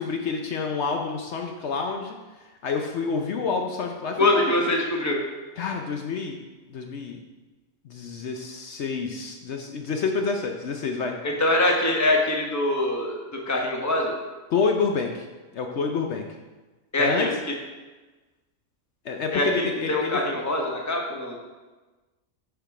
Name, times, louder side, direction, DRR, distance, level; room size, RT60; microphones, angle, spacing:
voice 1, 0.0-4.2 5.6-6.4 6.7-7.2 7.8-11.1 14.5-15.3 15.5-16.3 17.0-17.3 19.0-20.2, left 5 dB, 65° left, 3 dB, 0.9 m, -28 dB
voice 2, 4.2-5.2 11.2-14.2 16.9-17.3 19.3-21.4, left 1 dB, 15° left, 0 dB, 1.0 m, -24 dB
7.0 x 5.9 x 4.7 m, 1.2 s
omnidirectional pair, 1.3 m